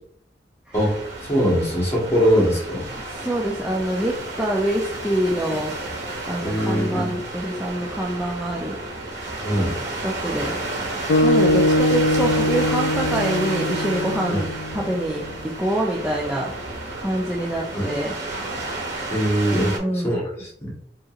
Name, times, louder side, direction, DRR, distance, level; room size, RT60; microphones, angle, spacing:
sound 1, 0.7-19.8, right 2 dB, 85° right, 1.5 m, -31 dB
voice 1, 1.2-2.9 6.4-7.1 9.4-9.8 14.3-14.4 17.7-17.9 19.1-20.7, equal, 15° left, -5 dB, 1.5 m, -22 dB
voice 2, 3.1-5.7 6.3-8.8 10.0-10.5 11.2-14.5 14.7-15.2 15.6-16.5 17.0-18.1 19.5-20.2, right 1 dB, 5° right, -4 dB, 0.4 m, -25 dB
sound 2, 11.1-15.5, left 1 dB, 80° left, 0.3 m, -22 dB
5.0 x 2.9 x 2.5 m, 0.63 s
head